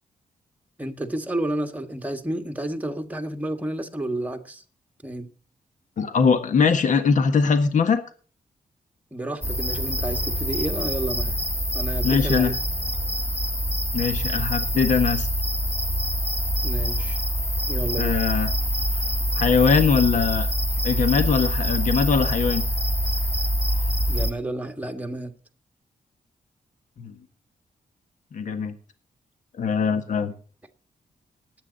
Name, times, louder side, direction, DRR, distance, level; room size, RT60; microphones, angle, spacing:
voice 1, 0.8-4.6 5.0-5.3 9.1-11.3 11.7-12.5 16.6-17.2 17.7-18.2 24.1-25.3, right 1 dB, 10° right, 1.7 m, -30 dB
voice 2, 6.0-8.0 12.0-12.6 13.9-15.3 18.0-18.5 19.3-20.5 20.8-22.6 27.0-27.1 28.3-28.7 29.6-30.3, left 5 dB, 60° left, 1.5 m, -21 dB
sound 1, 9.4-24.3, equal, 15° left, 2.1 m, -25 dB
19.5 x 8.7 x 4.1 m
cardioid pair, 105°, 14 cm